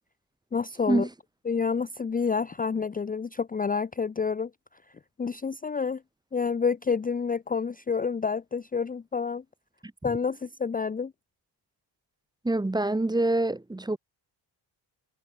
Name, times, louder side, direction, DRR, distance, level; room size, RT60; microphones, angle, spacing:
voice 1, 0.5-1.1 1.5-4.5 5.2-6.0 6.3-9.4 10.0-11.1, left 5 dB, 20° left, 0.6 m, -28 dB
voice 2, 12.4-14.0, right 2 dB, 10° right, 1.0 m, -26 dB
cardioid pair, 130°, 46 cm